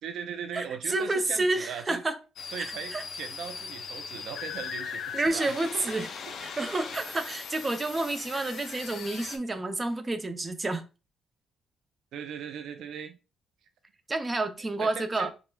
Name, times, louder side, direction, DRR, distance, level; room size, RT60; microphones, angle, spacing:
voice 1, 0.0-2.0 2.5-5.5 12.1-13.2 14.8-15.3, right 7 dB, 80° right, 0.3 m, -39 dB
voice 2, 0.5-2.2 2.6-3.0 5.1-6.1 6.4-10.8 14.1-15.3, right 2 dB, 25° right, 0.5 m, -29 dB
sound 1, 2.4-9.4, left 6 dB, 65° left, 0.4 m, -39 dB
4.4 x 2.0 x 2.2 m
cardioid pair, 90°, 0 cm